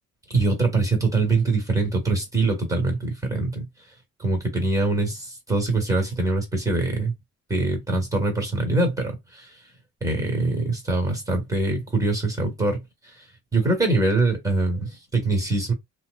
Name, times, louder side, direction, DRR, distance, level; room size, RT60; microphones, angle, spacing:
voice 1, 0.3-3.7 4.2-7.1 7.5-9.5 10.0-12.8 13.5-15.7, right 2 dB, 10° right, 1.4 m, -23 dB
2.7 x 2.2 x 2.4 m
cardioid pair, 90°, 30 cm